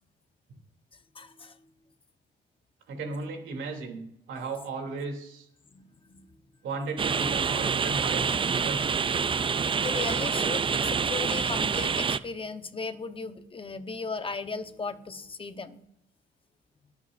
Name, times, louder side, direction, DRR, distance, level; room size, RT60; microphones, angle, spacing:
voice 1, 1.1-1.5 5.7-6.3 9.8-15.8, left 4 dB, 25° left, 9 dB, 1.1 m, -36 dB
voice 2, 2.9-4.0 4.3-5.5 6.6-9.1, right 4 dB, 80° right, 3 dB, 3.1 m, -35 dB
sound 1, 7.0-12.2, right 6 dB, 25° right, 0.4 m, -27 dB
22.5 x 8.3 x 2.6 m, 0.76 s
cardioid pair, 90°, 20 cm